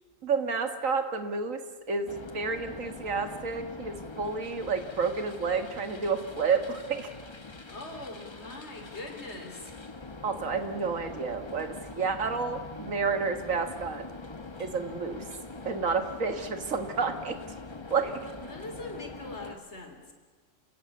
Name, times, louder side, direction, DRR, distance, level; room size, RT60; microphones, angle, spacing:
voice 1, 0.2-1.6 1.9-7.1 10.2-14.1 14.6-15.2 15.7-17.4 17.9-18.2, right 5 dB, 85° right, 8 dB, 2.1 m, -30 dB
sound 1, 2.1-19.6, left 3 dB, 25° left, 1.0 m, -43 dB
voice 2, 7.7-9.7 18.2-20.1, left 2 dB, 55° left, 4 dB, 3.6 m, -42 dB
28.5 x 16.5 x 8.5 m, 1.4 s
omnidirectional pair, 1.3 m